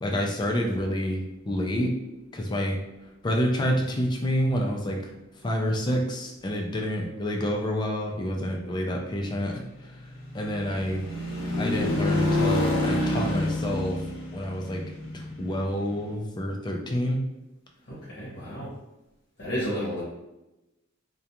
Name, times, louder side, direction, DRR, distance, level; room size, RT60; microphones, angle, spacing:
voice 1, 0.0-1.9 2.3-2.8 3.2-5.0 5.4-9.6 10.3-11.0 11.6-14.0 14.3-14.8 15.1-17.2, equal, 20° left, 1 dB, 0.3 m, -28 dB
sound 1, 9.5-16.1, left 1 dB, 85° left, 0.6 m, -28 dB
voice 2, 17.9-18.7 19.4-20.0, equal, 55° left, -9 dB, 0.8 m, -32 dB
2.4 x 2.2 x 2.8 m, 0.97 s
head